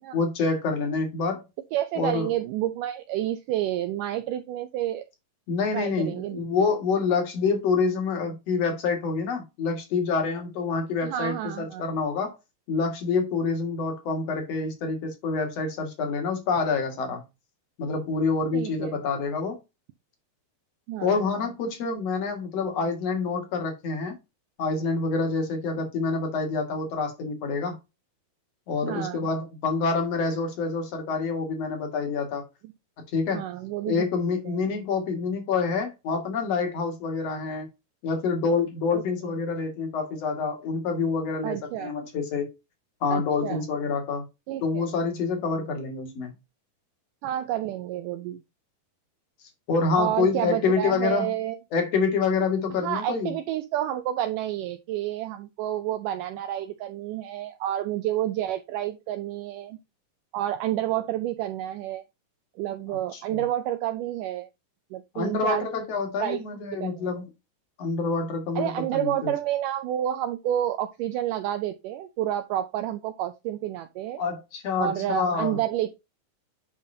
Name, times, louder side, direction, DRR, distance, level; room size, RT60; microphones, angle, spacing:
voice 1, 0.1-1.4 2.0-2.3 5.5-12.3 12.7-17.2 17.8-19.6 21.0-24.1 24.6-27.8 28.7-32.4 33.1-33.5 33.8-37.7 38.0-42.5 43.0-44.2 44.6-46.3 49.7-51.3 51.7-53.3 63.1-63.4 65.1-67.2 67.8-69.3 74.2-75.6, left 4 dB, 50° left, 2.7 m, -27 dB
voice 2, 1.7-5.0 5.7-6.4 11.0-11.8 18.5-18.9 20.9-21.2 28.8-29.3 33.3-34.1 34.5-34.6 38.9-39.0 41.4-41.9 43.1-43.7 44.5-44.8 47.2-48.4 49.9-51.6 52.8-59.8 60.3-62.1 62.6-64.5 64.9-65.7 66.2-66.4 66.7-67.1 68.6-74.2 74.8-75.9, right 12 dB, 80° right, 2.1 m, -29 dB
8.9 x 5.6 x 2.7 m
omnidirectional pair, 4.0 m